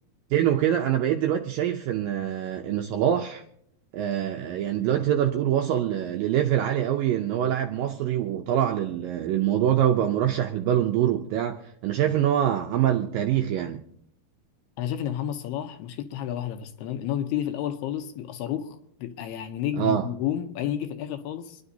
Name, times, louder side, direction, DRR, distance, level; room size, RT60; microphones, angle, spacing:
voice 1, 0.3-3.4 3.9-13.8 19.8-20.1, right 10 dB, 80° right, 2.0 m, -24 dB
voice 2, 14.8-21.6, left 10 dB, 80° left, 2.7 m, -31 dB
26.0 x 11.0 x 2.8 m
omnidirectional pair, 4.9 m